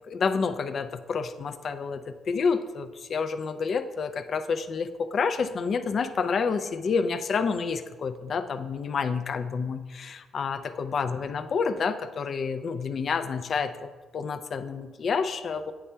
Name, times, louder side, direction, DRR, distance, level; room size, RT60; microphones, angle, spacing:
voice 1, 0.1-15.7, left 5 dB, 55° left, 10 dB, 0.5 m, -29 dB
8.7 x 3.3 x 5.5 m, 1.4 s
cardioid pair, 90°, 0 cm